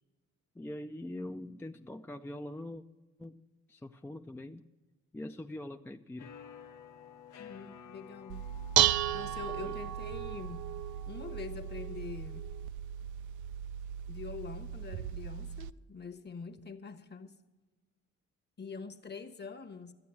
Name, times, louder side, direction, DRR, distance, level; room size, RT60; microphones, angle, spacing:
voice 1, 0.6-2.8 3.2-3.4 3.7-4.7 5.1-6.4 9.6-9.8, left 1 dB, 10° left, 0.4 m, -43 dB
sound 1, 6.2-11.8, left 7 dB, 85° left, 1.1 m, -53 dB
voice 2, 7.4-8.5 9.1-10.7 11.1-12.5 14.1-17.3 18.6-19.9, left 5 dB, 35° left, 1.1 m, -45 dB
Dishes pots and pans, 8.3-15.7, right 11 dB, 80° right, 0.5 m, -34 dB
13.0 x 8.4 x 7.0 m
cardioid pair, 90°, 30 cm